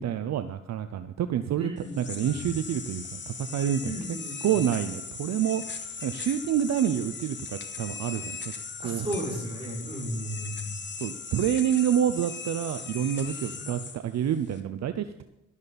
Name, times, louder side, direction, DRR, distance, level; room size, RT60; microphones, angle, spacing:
voice 1, 0.0-1.7 2.1-3.9 4.4-5.6 6.0-7.4 7.8-8.5 8.8-9.1 11.0-15.2, right 9 dB, 60° right, 10 dB, 0.7 m, -27 dB
voice 2, 1.6-2.5 3.8-4.6 8.8-10.8 13.5-13.6, equal, 20° right, -5 dB, 6.1 m, -35 dB
sound 1, 1.8-14.6, left 5 dB, 35° left, 1.6 m, -39 dB
13.0 x 12.5 x 4.2 m, 0.88 s
cardioid pair, 90°, 30 cm